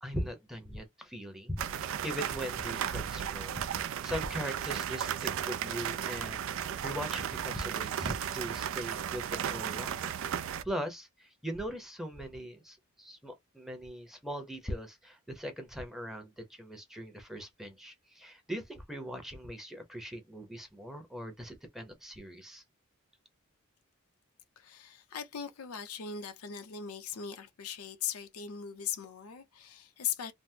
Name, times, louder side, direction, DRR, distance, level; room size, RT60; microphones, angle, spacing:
voice 1, 0.0-3.5 3.8-6.5 6.8-10.1 10.6-22.6, equal, ahead, 0.7 m, -40 dB
sound 1, 1.6-10.6, right 9 dB, 65° right, 0.4 m, -35 dB
voice 2, 24.6-30.3, left 8 dB, 85° left, 0.6 m, -39 dB
3.4 x 2.0 x 2.7 m
head